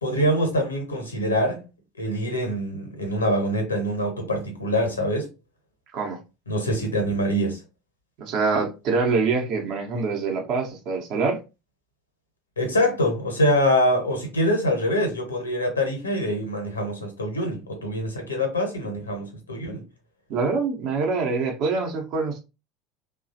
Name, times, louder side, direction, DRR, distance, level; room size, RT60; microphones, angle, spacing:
voice 1, 0.0-1.6 2.0-5.3 6.5-7.6 12.6-19.8, equal, 80° left, 0.9 m, -24 dB
voice 2, 8.2-11.4 20.3-22.4, right 4 dB, 45° right, 0.8 m, -25 dB
3.0 x 2.3 x 2.7 m
figure-of-eight pair, 75°, 0 cm